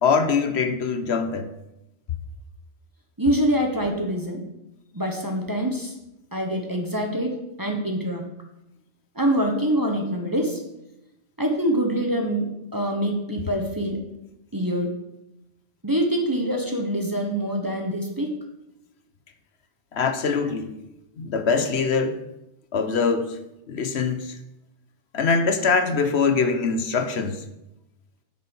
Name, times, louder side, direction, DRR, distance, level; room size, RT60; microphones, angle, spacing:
voice 1, 0.0-1.5 19.9-20.7 21.2-22.2 22.7-23.4 23.7-24.4 25.1-27.4, left 5 dB, 70° left, 7 dB, 1.1 m, -23 dB
voice 2, 3.2-4.4 4.9-5.9 6.3-7.3 7.6-8.2 9.1-10.6 11.4-14.0 14.5-14.9 15.8-18.3, right 1 dB, 20° right, 3 dB, 1.1 m, -25 dB
8.2 x 6.8 x 5.4 m, 0.89 s
omnidirectional pair, 1.2 m